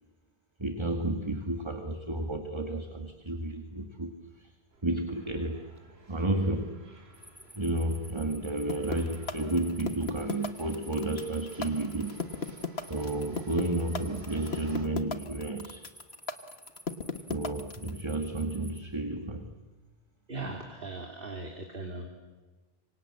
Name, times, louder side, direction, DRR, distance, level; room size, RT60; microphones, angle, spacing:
voice 1, 0.6-4.5 4.8-5.7 6.1-6.8 7.5-12.2 12.9-15.9 17.3-19.6, right 2 dB, 25° right, 5 dB, 1.8 m, -32 dB
sound 1, 4.7-14.8, right 2 dB, 90° right, 2.8 m, -54 dB
sound 2, 7.1-18.8, equal, ahead, 1.8 m, -53 dB
sound 3, 8.7-17.9, left 4 dB, 85° left, 1.6 m, -34 dB
voice 2, 20.3-22.1, right 2 dB, 60° right, 2 dB, 3.0 m, -39 dB
27.0 x 25.0 x 7.7 m, 1.3 s
omnidirectional pair, 1.0 m